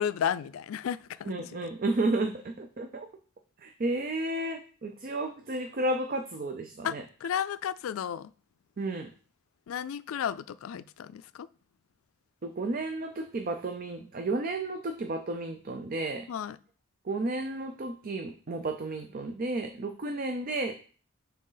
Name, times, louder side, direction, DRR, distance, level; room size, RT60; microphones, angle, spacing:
voice 1, 0.0-1.5 6.8-8.3 9.7-11.5 16.3-16.6 20.1-20.2, left 8 dB, 80° left, 0.3 m, -33 dB
voice 2, 1.3-3.1 3.6-7.0 8.8-9.1 12.4-16.3 17.1-20.8, right 2 dB, 45° right, 0.5 m, -32 dB
6.4 x 4.1 x 3.9 m
head